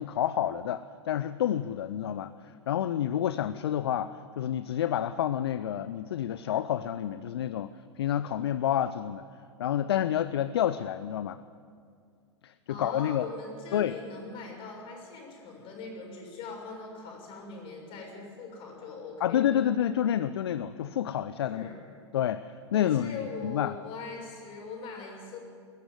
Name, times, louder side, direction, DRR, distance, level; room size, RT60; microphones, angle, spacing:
voice 1, 0.0-7.7 8.0-9.2 9.6-11.4 12.4-13.2 13.7-13.9 19.2-21.7 22.1-23.8, left 10 dB, 60° left, 14 dB, 0.6 m, -29 dB
voice 2, 12.7-19.6 21.5-21.8 22.7-25.4, left 4 dB, 35° left, 1 dB, 6.6 m, -41 dB
22.0 x 14.0 x 9.7 m, 2.2 s
figure-of-eight pair, 95°, 15 cm